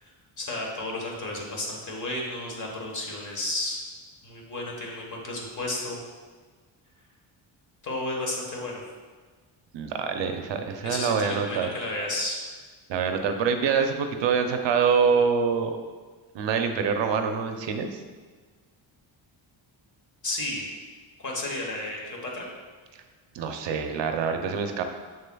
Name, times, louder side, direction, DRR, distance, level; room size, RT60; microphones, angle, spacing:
voice 1, 0.4-3.8 4.2-6.0 7.8-8.8 10.8-12.4 20.2-20.6 21.2-22.5, left 2 dB, 40° left, -1 dB, 1.3 m, -32 dB
voice 2, 9.7-11.7 12.9-15.7 16.3-18.0 23.3-24.8, right 6 dB, 65° right, 6 dB, 0.6 m, -25 dB
7.0 x 6.6 x 2.3 m, 1.5 s
cardioid pair, 160°, 47 cm